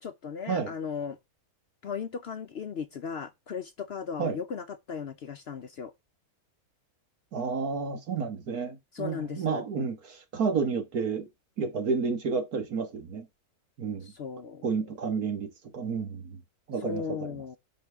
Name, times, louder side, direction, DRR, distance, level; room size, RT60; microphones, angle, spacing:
voice 1, 0.0-1.2 1.8-5.9 8.9-9.6 14.0-14.7 16.8-17.6, left 6 dB, 55° left, 0.8 m, -36 dB
voice 2, 7.3-10.0 10.3-11.3 11.6-13.3 13.8-14.1 14.6-16.4 16.7-17.3, right 5 dB, 75° right, 2.0 m, -30 dB
10.0 x 6.0 x 3.5 m
omnidirectional pair, 1.6 m